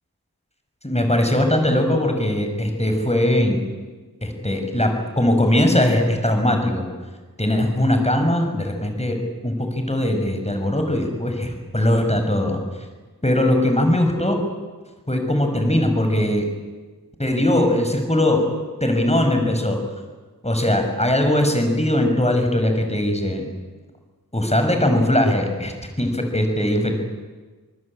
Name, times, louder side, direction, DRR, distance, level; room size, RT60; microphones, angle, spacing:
voice 1, 0.8-3.6 4.2-6.9 7.4-9.2 9.4-12.6 13.2-14.4 15.1-16.4 17.2-18.5 18.8-19.8 20.4-23.5 24.3-27.0, left 1 dB, 15° left, 5 dB, 5.7 m, -20 dB
26.5 x 19.5 x 8.7 m, 1.3 s
wide cardioid pair, 60°, 38 cm